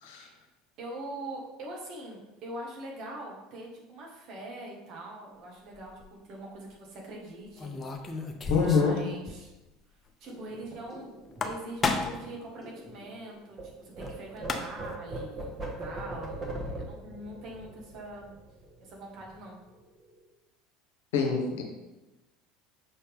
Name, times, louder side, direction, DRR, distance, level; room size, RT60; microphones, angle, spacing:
voice 1, 0.0-0.3 0.8-7.7 8.0-9.5 10.2-11.1 11.4-18.3 18.8-19.6, right 1 dB, 50° right, -2 dB, 1.8 m, -43 dB
sound 1, 5.7-6.1 7.6-9.0 9.3-9.4 9.7-9.8 11.2-12.3 14.1-14.2 14.4-15.0, left 4 dB, 25° left, 0.7 m, -32 dB
voice 2, 8.5-9.1 21.1-21.6, left 5 dB, 65° left, 2 dB, 1.0 m, -25 dB
sound 2, 10.3-13.7 13.9-18.9 19.2-19.5 19.7-20.3, right 1 dB, 30° right, 1.6 m, -41 dB
6.3 x 4.3 x 3.6 m, 1.0 s
figure-of-eight pair, 70°, 0 cm